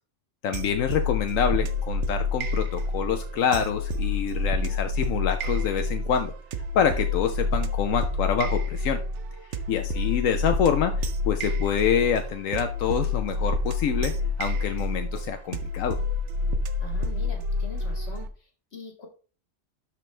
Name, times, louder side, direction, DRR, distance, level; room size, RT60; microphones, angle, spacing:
voice 1, 0.4-6.3 6.7-9.0 9.7-16.0, left 8 dB, 85° left, 7 dB, 1.1 m, -26 dB
sound 1, 0.5-18.3, left 2 dB, 65° right, 1.0 m, -28 dB
voice 2, 16.8-19.1, left 4 dB, 55° left, 3 dB, 2.0 m, -43 dB
12.0 x 4.6 x 3.2 m, 0.38 s
omnidirectional pair, 1.3 m